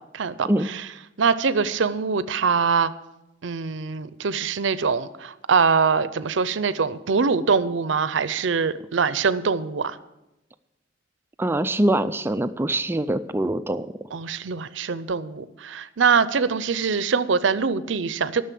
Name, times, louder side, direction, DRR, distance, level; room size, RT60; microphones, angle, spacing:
voice 1, 0.2-0.9 1.2-2.9 3.4-10.0 14.1-18.4, right 5 dB, 80° right, 15 dB, 0.6 m, -23 dB
voice 2, 11.4-13.9, right 1 dB, 10° right, 11 dB, 0.3 m, -23 dB
12.5 x 6.5 x 8.4 m, 0.94 s
head